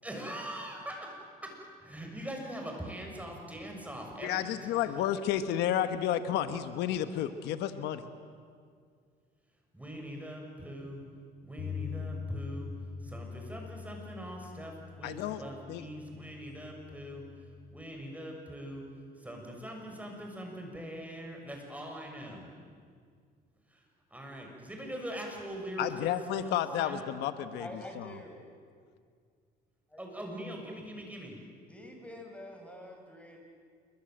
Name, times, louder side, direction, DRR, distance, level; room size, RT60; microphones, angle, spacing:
voice 1, 0.0-1.1 1.4-1.5 1.8-5.0 9.7-11.0 11.4-12.7 13.0-17.2 17.7-18.8 19.2-22.5 23.7-23.8 24.1-27.1 30.0-31.4, equal, 10° right, 1 dB, 6.6 m, -42 dB
voice 2, 4.2-8.0 15.0-15.4 15.7-15.8 25.8-27.7 28.0-28.1, left 10 dB, 85° left, 10 dB, 1.3 m, -31 dB
Bass guitar, 11.6-17.8, left 5 dB, 60° left, 3.7 m, -43 dB
voice 3, 27.6-28.4 29.9-30.3 31.7-33.4, left 1 dB, 5° left, 2 dB, 6.0 m, -46 dB
27.5 x 23.5 x 7.9 m, 2.1 s
cardioid pair, 110°, 17 cm